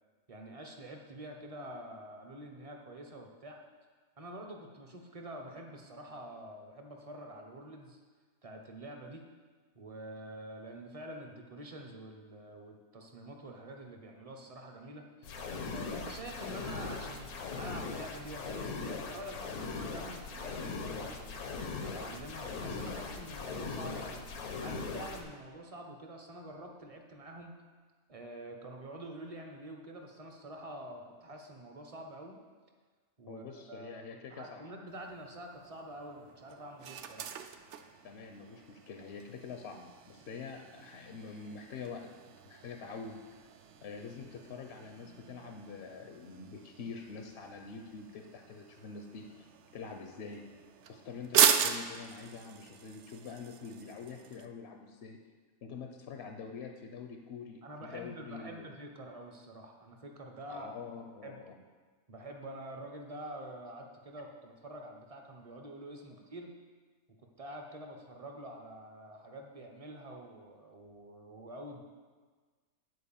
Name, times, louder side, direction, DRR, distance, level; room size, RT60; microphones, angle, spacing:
voice 1, 0.3-3.6 4.2-8.0 8.4-9.2 9.7-15.3 15.7-21.4 21.8-24.3 24.6-27.5 28.1-32.4 33.2-37.3 57.6-60.7 61.2-61.4 62.1-66.5 67.4-71.8, right 1 dB, 30° right, 2 dB, 0.7 m, -47 dB
sound 1, 15.2-25.2, left 4 dB, 85° left, 1.4 m, -40 dB
voice 2, 33.3-34.6 38.0-42.1 42.4-43.2 43.8-50.4 50.9-55.2 55.6-58.7 60.5-61.5, left 5 dB, 55° left, 4 dB, 0.8 m, -45 dB
sound 2, 34.9-54.5, right 8 dB, 65° right, 0.8 m, -37 dB
9.8 x 4.5 x 7.1 m, 1.4 s
omnidirectional pair, 1.5 m